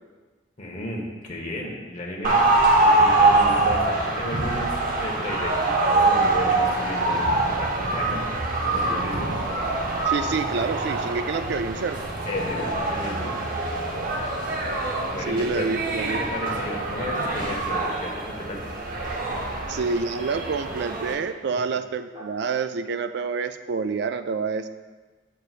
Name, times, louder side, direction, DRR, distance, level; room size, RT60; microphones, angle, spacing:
voice 1, 0.6-8.3 8.7-9.3 12.3-13.4 15.1-15.7 16.2-18.6, left 1 dB, 40° left, -1 dB, 1.1 m, -34 dB
sound 1, 2.2-21.1, right 2 dB, 50° right, 0.8 m, -24 dB
sound 2, 4.9-5.6 7.6-8.4 9.9-10.5 12.0-12.4 13.6-14.5 16.5-17.3 20.2-20.6 22.1-22.7, right 1 dB, 30° right, 1.1 m, -40 dB
voice 2, 10.1-12.1 15.3-16.2 19.7-24.7, right 4 dB, 65° right, 10 dB, 0.4 m, -27 dB
7.6 x 6.6 x 2.4 m, 1.3 s
head